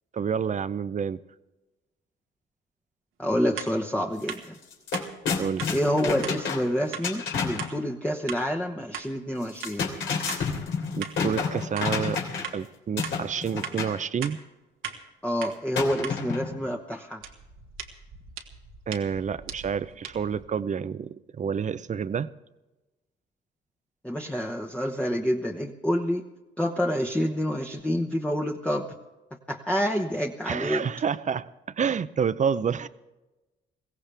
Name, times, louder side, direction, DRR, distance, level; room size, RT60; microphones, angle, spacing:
voice 1, 0.1-1.2 5.4-5.7 10.9-12.2 12.5-14.4 18.9-22.3 30.5-32.9, right 7 dB, 40° right, 15 dB, 0.6 m, -29 dB
voice 2, 3.2-4.6 5.7-9.9 15.2-17.2 24.0-26.2 26.6-28.9 29.3-30.8, equal, 5° left, 0 dB, 1.1 m, -28 dB
sound 1, 3.6-3.7 4.3-4.4 4.9-5.1 5.6-5.7 6.2-6.4 6.9-7.1 7.6-7.7 8.3-8.4 8.9-9.1 9.6-9.8 10.3-10.4 11.0-11.2 11.8-11.9 12.4-12.6 13.0-13.2 13.6-13.8 14.2-14.4 14.8-15.0 15.4-15.5 16.0-16.2 17.2-20.5, right 7 dB, 90° right, 1.7 m, -38 dB
sound 2, 4.2-4.3 4.6-7.7 9.4-12.6 13.0-14.0 15.7-16.6, left 5 dB, 75° left, 3.2 m, -30 dB
22.0 x 16.5 x 3.4 m, 1.1 s
cardioid pair, 90°, 20 cm